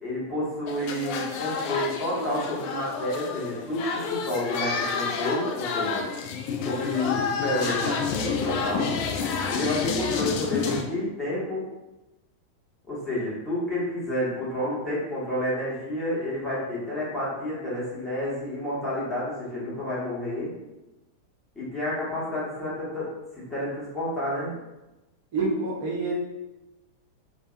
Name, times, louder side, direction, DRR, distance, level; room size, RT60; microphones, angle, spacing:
voice 1, 0.0-6.0 6.6-8.9 9.5-11.7 12.9-20.5 21.5-23.1 23.3-24.5, left 1 dB, 5° left, -9 dB, 1.3 m, -30 dB
sound 1, 0.7-10.8, left 5 dB, 45° left, 0.3 m, -29 dB
voice 2, 25.3-26.1, right 3 dB, 50° right, -4 dB, 0.6 m, -27 dB
3.2 x 2.1 x 2.5 m, 1.0 s
figure-of-eight pair, 90°, 0 cm